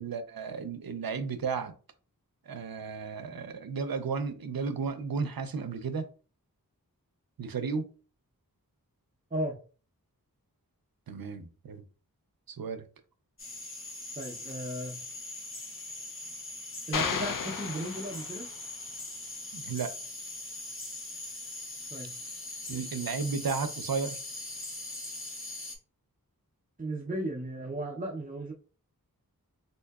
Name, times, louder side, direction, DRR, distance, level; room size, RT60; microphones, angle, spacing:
voice 1, 0.0-1.7 2.5-6.1 7.4-7.9 11.1-11.8 12.5-12.9 19.5-19.9 22.7-24.2, right 5 dB, 75° right, 0.5 m, -33 dB
sound 1, 13.4-25.8, left 2 dB, 35° left, 0.8 m, -41 dB
voice 2, 14.2-15.0 16.9-18.5 21.9-22.1 26.8-28.5, right 1 dB, 25° right, 0.5 m, -35 dB
sound 2, 16.9-18.7, left 6 dB, 60° left, 0.5 m, -34 dB
3.7 x 2.6 x 2.3 m
wide cardioid pair, 55°, 36 cm